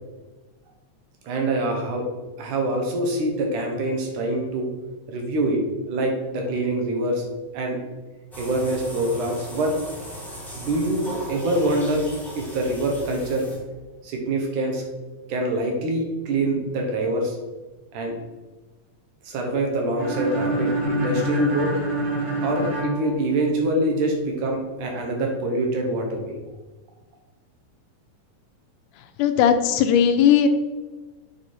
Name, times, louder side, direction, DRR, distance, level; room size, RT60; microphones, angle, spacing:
voice 1, 1.2-2.1 2.4-4.7 5.1-7.2 7.5-7.8 8.4-9.7 10.6-11.0 11.3-12.1 12.4-13.5 14.0-14.8 15.3-17.4 17.9-18.1 19.2-21.7 22.4-26.3, right 1 dB, 80° right, 2 dB, 2.9 m, -25 dB
sound 1, 8.3-13.9, right 1 dB, ahead, 1.1 m, -37 dB
sound 2, 20.0-23.9, right 1 dB, 45° right, 2.4 m, -26 dB
voice 2, 29.0-30.5, left 8 dB, 85° left, 8 dB, 2.2 m, -18 dB
8.0 x 4.8 x 4.5 m, 1.2 s
omnidirectional pair, 3.5 m